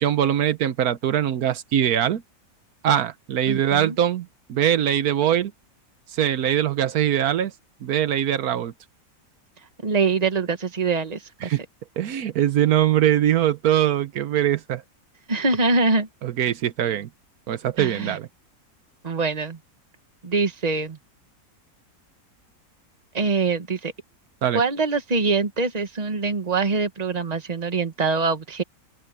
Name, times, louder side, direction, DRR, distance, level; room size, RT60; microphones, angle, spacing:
voice 1, 0.0-2.2 2.8-5.5 6.1-7.5 7.8-8.7 11.4-11.6 12.0-14.8 16.2-17.1 17.5-18.3 24.4-24.6, right 10 dB, 80° right, 1.3 m, -22 dB
voice 2, 3.5-4.0 9.8-11.5 15.3-16.1 17.8-18.2 19.0-19.6 20.2-21.0 23.1-23.9 24.5-28.6, right 4 dB, 30° right, 1.4 m, -24 dB
open air
omnidirectional pair, 1.6 m